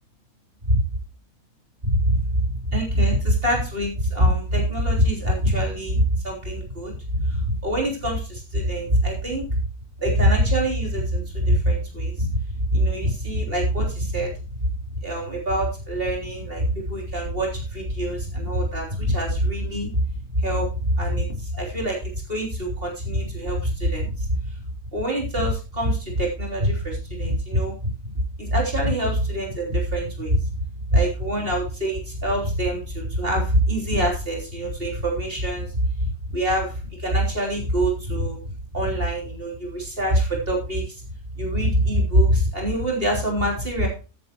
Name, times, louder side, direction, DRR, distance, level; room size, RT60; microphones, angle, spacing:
voice 1, 1.8-2.4 2.7-9.4 10.0-12.3 12.7-14.3 15.0-20.0 20.3-22.0 22.3-24.3 24.9-27.9 28.4-30.4 30.9-35.7 36.0-38.4 38.7-41.0 41.4-43.9, equal, 40° right, -1 dB, 3.8 m, -24 dB
13.5 x 9.7 x 3.0 m, 0.32 s
omnidirectional pair, 1.6 m